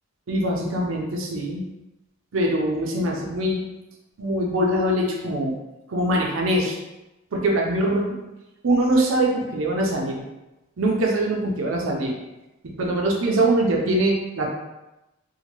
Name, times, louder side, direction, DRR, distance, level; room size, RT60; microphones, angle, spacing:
voice 1, 0.3-1.6 2.3-3.6 4.2-5.5 5.9-6.8 7.3-8.2 8.6-10.2 10.8-12.2 12.6-14.5, right 1 dB, 75° right, -1 dB, 0.5 m, -23 dB
2.8 x 2.2 x 2.9 m, 0.98 s
head